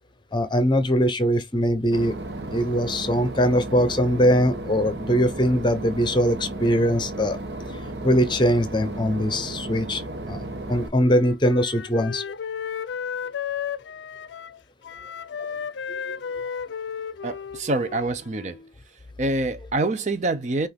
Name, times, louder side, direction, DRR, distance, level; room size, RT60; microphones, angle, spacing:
voice 1, 0.3-2.2 2.5-7.4 8.0-12.2 15.4-15.5 15.9-16.2, equal, 25° left, 0.8 m, -22 dB
Boat Water vehicle / Engine, 1.9-10.9, right 1 dB, 75° right, 1.0 m, -34 dB
Wind instrument woodwind instrument, 11.0-18.7, left 7 dB, 85° left, 0.4 m, -34 dB
voice 2, 17.2-18.6 19.2-20.7, right 2 dB, 40° right, 0.6 m, -26 dB
6.0 x 2.5 x 3.5 m
head